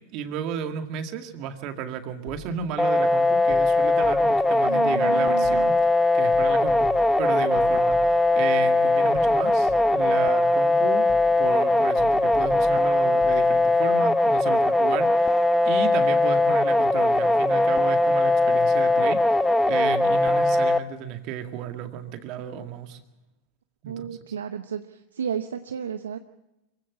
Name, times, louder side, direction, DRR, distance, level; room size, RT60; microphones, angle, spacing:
voice 1, 0.1-5.7 6.1-11.1 11.4-23.0 23.8-24.2, right 8 dB, 50° right, 6 dB, 2.1 m, -33 dB
sound 1, 2.3-2.8 3.5-4.5 5.4-6.0 6.3-8.4 9.1-10.2 11.1-11.6 12.0-13.5, left 5 dB, 50° left, 4.7 m, -43 dB
sound 2, 2.8-20.8, left 2 dB, 5° left, 1.0 m, -20 dB
voice 2, 4.6-5.7 23.9-26.2, right 7 dB, 85° right, 9 dB, 0.8 m, -33 dB
Wind instrument woodwind instrument, 14.9-20.6, right 5 dB, 25° right, 3.3 m, -46 dB
24.0 x 16.0 x 7.2 m, 0.95 s
hypercardioid pair, 100°, 0 cm